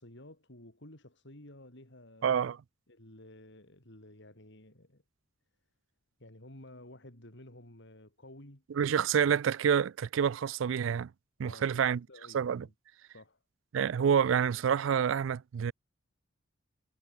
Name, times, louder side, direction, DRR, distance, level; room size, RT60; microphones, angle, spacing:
voice 1, 0.0-2.4 2.9-5.0 6.2-8.6 11.4-12.7 13.1-13.4, left 1 dB, 65° left, 5.3 m, -53 dB
voice 2, 2.2-2.6 8.7-11.1 11.4-12.0 12.3-12.7 13.7-15.7, right 7 dB, 70° right, 0.4 m, -28 dB
head